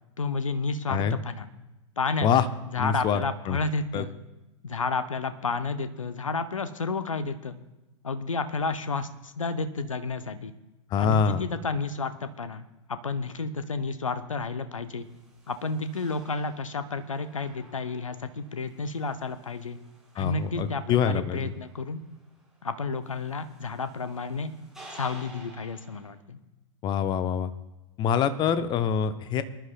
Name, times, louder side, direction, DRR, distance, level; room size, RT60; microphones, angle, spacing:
voice 1, 0.2-1.5 2.0-2.3 2.7-4.2 4.6-7.6 8.0-10.5 10.9-12.6 12.9-15.1 15.5-19.8 20.2-22.0 22.6-24.5 24.9-26.4, left 4 dB, 80° left, 11 dB, 0.8 m, -31 dB
voice 2, 2.8-3.6 3.9-4.0 10.9-11.4 20.2-21.5 26.8-27.5 28.0-29.4, left 7 dB, 25° left, 12 dB, 0.8 m, -25 dB
sound 1, 14.8-26.1, right 2 dB, 5° right, 4.5 m, -53 dB
24.5 x 11.5 x 2.2 m, 1.1 s
figure-of-eight pair, 100°, 17 cm